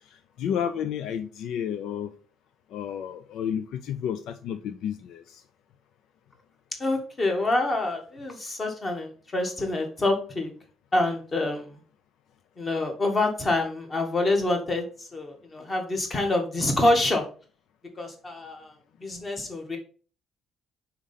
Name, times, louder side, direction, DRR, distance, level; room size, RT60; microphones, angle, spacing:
voice 1, 0.1-2.1 2.7-5.4, left 8 dB, 75° left, 9 dB, 0.5 m, -31 dB
voice 2, 6.8-10.5 10.9-11.8 12.6-17.2 18.0-18.7 19.0-19.8, left 2 dB, 25° left, 3 dB, 1.7 m, -26 dB
4.9 x 4.4 x 5.5 m, 0.39 s
cardioid pair, 145°, 0 cm